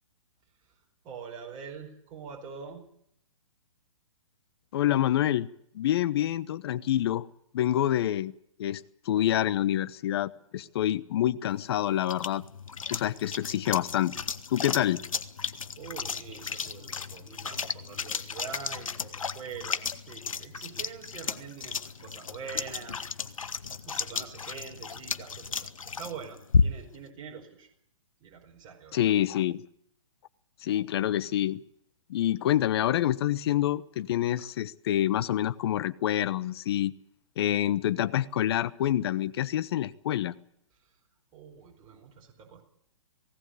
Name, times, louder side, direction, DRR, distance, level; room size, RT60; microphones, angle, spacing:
voice 1, 1.0-2.9 13.5-13.6 15.8-23.5 23.8-25.7 26.0-27.7 28.2-29.1 40.7-41.0 41.3-42.6, right 6 dB, 30° right, 1 dB, 5.0 m, -44 dB
voice 2, 4.7-5.5 5.7-7.3 7.5-8.3 8.6-12.4 12.9-14.1 14.5-15.0 28.9-29.6 30.6-31.6 32.1-36.9 37.4-40.3, left 12 dB, 50° left, 15 dB, 1.1 m, -27 dB
sound 1, 11.5-27.0, left 5 dB, 85° left, 1.4 m, -33 dB
19.5 x 17.5 x 8.5 m, 0.70 s
hypercardioid pair, 135°, 17 cm